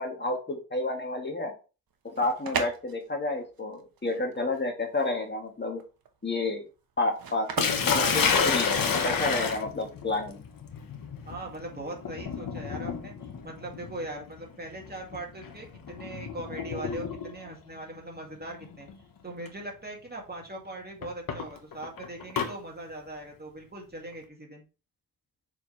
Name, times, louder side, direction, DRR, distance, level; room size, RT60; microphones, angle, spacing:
voice 1, 0.0-1.5 2.0-5.8 6.2-6.7 7.0-7.5 7.8-10.4, left 2 dB, 30° left, 3 dB, 1.5 m, -30 dB
sound 1, 1.9-9.0, right 6 dB, 75° right, 1.1 m, -38 dB
Sink (filling or washing), 7.6-17.5 18.6-18.9 19.5-19.6 21.0-22.5, left 6 dB, 70° left, 1.2 m, -30 dB
voice 2, 11.3-13.1 13.4-18.9 19.2-24.7, right 2 dB, 25° right, 0 dB, 2.1 m, -40 dB
6.7 x 4.5 x 3.2 m, 0.33 s
cardioid pair, 75°, 35 cm